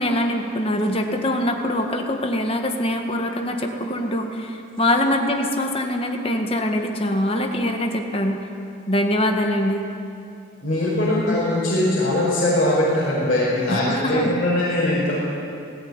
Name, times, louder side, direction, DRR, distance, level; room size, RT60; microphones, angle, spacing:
voice 1, 0.0-8.5 8.9-9.8 13.7-14.4, left 1 dB, 30° left, 3 dB, 1.7 m, -23 dB
voice 2, 10.6-15.2, left 1 dB, 45° left, -9 dB, 5.5 m, -21 dB
18.0 x 17.5 x 9.8 m, 2.5 s
head